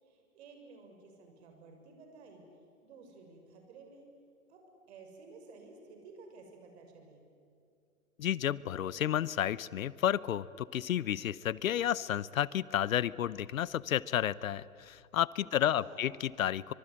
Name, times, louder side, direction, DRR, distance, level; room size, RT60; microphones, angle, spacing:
voice 1, 0.0-2.4 2.8-4.1 4.5-4.6 4.9-7.2 15.4-16.1, right 4 dB, 50° right, 4 dB, 6.8 m, -54 dB
voice 2, 8.2-16.7, left 10 dB, 70° left, 20 dB, 0.8 m, -31 dB
25.0 x 23.5 x 9.8 m, 2.5 s
hypercardioid pair, 145°, 43 cm